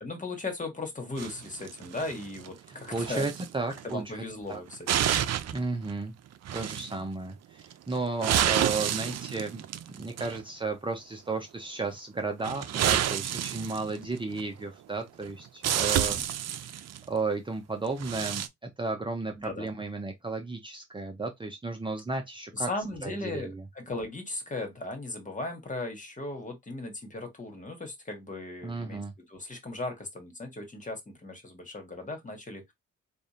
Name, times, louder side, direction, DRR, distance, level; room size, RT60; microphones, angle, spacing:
voice 1, 0.0-3.3 3.8-5.1 15.9-16.2 19.3-19.7 22.5-29.0 29.3-32.7, left 2 dB, 25° left, 1.6 m, -37 dB
sound 1, 1.2-2.5 2.9-3.5 3.7-4.0 4.5-5.6 5.9-6.0 6.5-7.0 7.7-10.4 12.4-14.4 15.2-15.3 15.6-17.0 17.9-18.5, right 10 dB, 60° right, 0.6 m, -29 dB
voice 2, 2.7-4.6 5.5-6.1 6.5-9.6 9.9-16.2 16.6-16.8 17.1-22.7 23.0-23.6 28.6-29.1, right 3 dB, 15° right, 0.8 m, -34 dB
3.4 x 2.5 x 4.2 m
cardioid pair, 90°, 30 cm